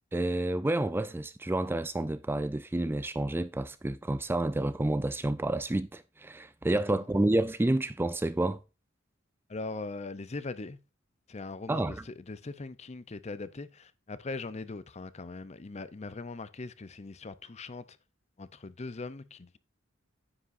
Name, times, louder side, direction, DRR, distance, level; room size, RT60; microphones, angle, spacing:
voice 1, 0.1-8.6 11.7-12.0, right 1 dB, 10° right, 0.4 m, -29 dB
voice 2, 9.5-10.8 11.3-18.0 18.4-19.6, left 3 dB, 35° left, 0.6 m, -40 dB
9.8 x 8.5 x 2.6 m
head